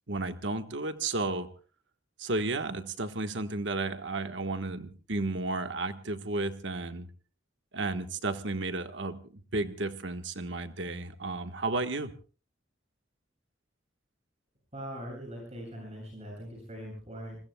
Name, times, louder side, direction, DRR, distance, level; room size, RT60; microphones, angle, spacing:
voice 1, 0.1-1.5 2.2-7.1 7.7-12.1, right 2 dB, 65° right, 8 dB, 1.4 m, -33 dB
voice 2, 14.7-17.4, equal, 35° right, -2 dB, 7.4 m, -41 dB
29.5 x 21.0 x 2.3 m, 0.38 s
head